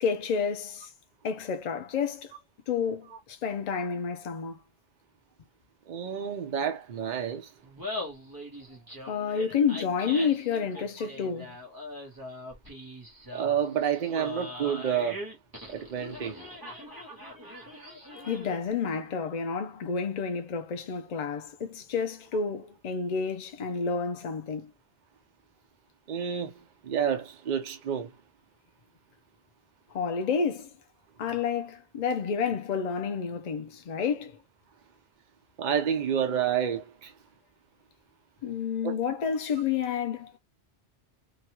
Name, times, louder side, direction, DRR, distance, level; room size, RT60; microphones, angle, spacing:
voice 1, 0.0-0.9 1.2-2.3 2.7-4.6 9.1-11.6 18.2-24.7 29.9-30.7 31.2-34.4 38.4-40.3, left 6 dB, 60° left, 0.4 m, -30 dB
voice 2, 5.9-7.5 13.3-15.2 15.7-16.4 26.1-26.5 26.8-28.1 35.6-37.1 38.8-39.0, right 8 dB, 50° right, 0.6 m, -29 dB
Laughter, 7.6-18.7, left 1 dB, 20° right, 1.0 m, -41 dB
2.9 x 2.3 x 2.9 m
omnidirectional pair, 1.1 m